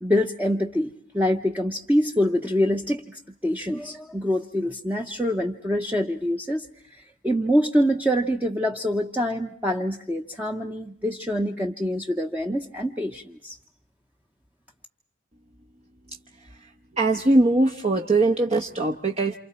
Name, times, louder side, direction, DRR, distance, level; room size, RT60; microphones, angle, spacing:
voice 1, 0.0-6.7 7.2-13.6, equal, 10° right, 2 dB, 0.9 m, -25 dB
voice 2, 17.0-19.4, right 2 dB, 35° right, 1 dB, 1.0 m, -21 dB
28.5 x 28.0 x 4.4 m, 0.64 s
head